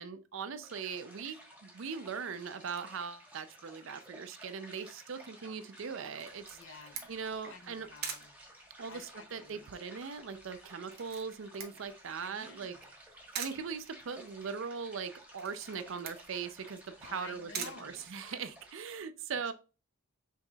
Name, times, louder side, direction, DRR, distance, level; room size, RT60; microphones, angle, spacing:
voice 1, 0.0-6.6 7.1-7.9 8.8-12.8 13.3-19.5, right 6 dB, 60° right, 0.5 m, -40 dB
sound 1, 0.6-19.0, right 1 dB, 10° right, 1.2 m, -55 dB
Camera, 6.2-18.7, right 7 dB, 45° right, 0.8 m, -46 dB
voice 2, 6.5-7.1 7.4-8.3 8.9-9.7 12.3-12.9 17.0-18.1, left 4 dB, 55° left, 0.7 m, -52 dB
5.5 x 3.6 x 2.3 m
head